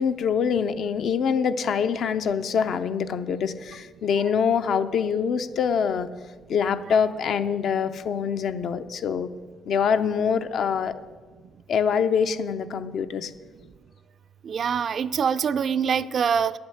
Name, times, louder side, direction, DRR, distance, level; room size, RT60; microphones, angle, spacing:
voice 1, 0.0-6.1 6.5-9.3 9.7-10.9 11.7-13.3, left 7 dB, 65° left, 10 dB, 0.6 m, -24 dB
voice 2, 14.4-16.5, right 7 dB, 55° right, 14 dB, 0.4 m, -24 dB
8.9 x 7.9 x 7.9 m, 1.4 s
cardioid pair, 90°, 0 cm